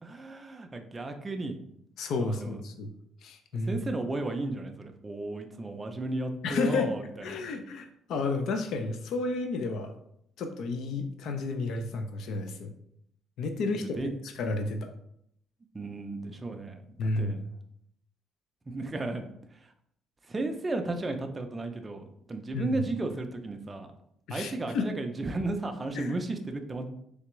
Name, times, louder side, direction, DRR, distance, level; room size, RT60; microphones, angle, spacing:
voice 1, 0.0-1.6 2.2-2.6 3.7-7.4 13.9-14.1 15.7-17.4 18.7-19.3 20.3-23.9 24.3-26.9, right 2 dB, 20° right, 5 dB, 0.4 m, -34 dB
voice 2, 2.0-2.9 3.2-3.8 6.4-6.9 7.2-9.9 10.4-12.7 13.4-14.9 17.0-17.4 22.5-22.8 24.3-24.8 25.9-26.2, left 3 dB, 65° left, 6 dB, 0.4 m, -31 dB
3.4 x 3.3 x 3.0 m, 0.73 s
cardioid pair, 140°, 0 cm